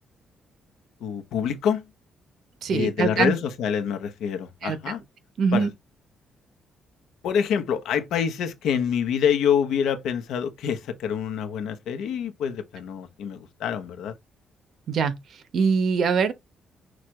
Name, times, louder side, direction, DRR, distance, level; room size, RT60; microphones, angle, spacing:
voice 1, 1.0-1.8 2.7-5.0 5.5-5.7 7.2-14.1, left 8 dB, 80° left, 0.9 m, -26 dB
voice 2, 2.6-3.3 4.6-4.8 5.4-5.7 14.9-15.1 15.5-16.3, right 5 dB, 65° right, 1.0 m, -22 dB
6.1 x 2.5 x 3.1 m
cardioid pair, 90°, 0 cm